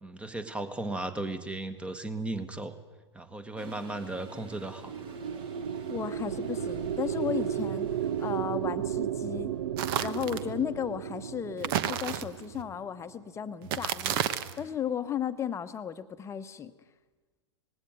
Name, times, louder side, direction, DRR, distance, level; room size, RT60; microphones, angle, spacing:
voice 1, 0.0-2.7 3.1-4.9, right 2 dB, 5° right, 12 dB, 1.4 m, -36 dB
Toilet flush, 3.6-8.8, right 5 dB, 35° right, 2.4 m, -49 dB
sound 1, 4.6-13.1, right 9 dB, 70° right, 0.7 m, -34 dB
voice 2, 5.9-9.5 10.0-14.2 14.6-16.7, left 8 dB, 20° left, 10 dB, 1.1 m, -35 dB
sound 2, 9.8-10.5 11.6-12.6 13.6-14.6, right 10 dB, 50° right, 1.1 m, -31 dB
19.5 x 17.0 x 9.0 m, 1.3 s
hypercardioid pair, 105°, 15 cm